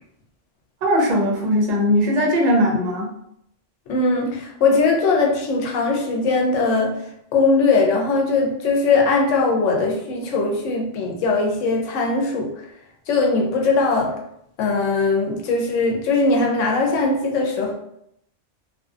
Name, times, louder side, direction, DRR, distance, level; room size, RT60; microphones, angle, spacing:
voice 1, 0.8-3.1, equal, 45° right, -1 dB, 0.6 m, -19 dB
voice 2, 3.9-6.9 7.3-12.5 13.1-14.1 14.6-17.7, left 3 dB, 90° left, 2 dB, 0.9 m, -20 dB
2.6 x 2.2 x 2.3 m, 0.75 s
omnidirectional pair, 1.3 m